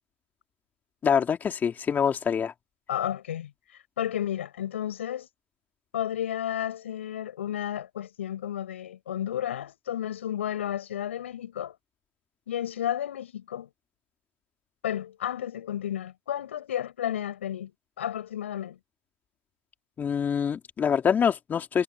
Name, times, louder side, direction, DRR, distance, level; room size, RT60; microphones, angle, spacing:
voice 1, 1.0-2.5 20.0-21.8, left 7 dB, 30° left, 2.7 m, -25 dB
voice 2, 2.9-3.5 4.0-5.3 5.9-11.7 12.5-13.7 14.8-17.7 18.0-18.8, left 10 dB, 90° left, 7.6 m, -32 dB
hypercardioid pair, 100°, 6 cm